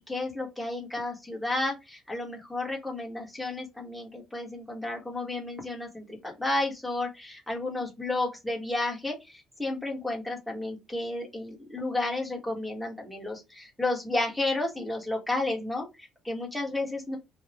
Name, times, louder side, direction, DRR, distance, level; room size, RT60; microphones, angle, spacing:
voice 1, 0.1-17.2, left 2 dB, ahead, -1 dB, 1.4 m, -32 dB
5.5 x 2.4 x 3.6 m, 0.23 s
cardioid pair, 170°, 0 cm